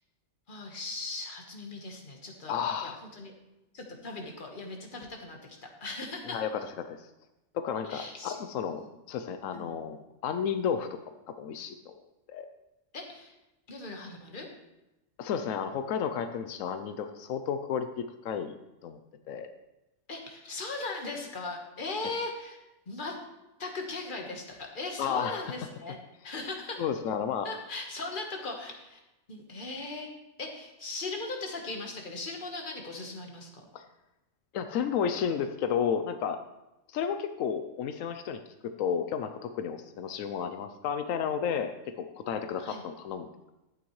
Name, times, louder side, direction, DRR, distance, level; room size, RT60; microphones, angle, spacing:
voice 1, 0.5-3.3 3.7-5.4 5.8-6.4 7.9-8.4 8.7-8.9 9.5-9.8 12.9-13.4 13.7-14.5 20.1-23.2 23.6-26.0 26.2-26.8 27.4-29.0 29.3-30.1 30.4-33.7 42.6-42.8, left 3 dB, 40° left, 2 dB, 1.5 m, -38 dB
voice 2, 2.5-3.0 6.2-7.1 7.5-11.9 12.3-12.5 15.2-17.9 18.2-18.6 18.8-19.0 19.3-19.5 25.0-25.5 26.8-27.5 33.7-33.8 34.5-36.4 36.9-38.4 38.8-43.5, left 7 dB, 85° left, 8 dB, 1.0 m, -32 dB
12.0 x 8.7 x 3.1 m, 0.97 s
omnidirectional pair, 1.3 m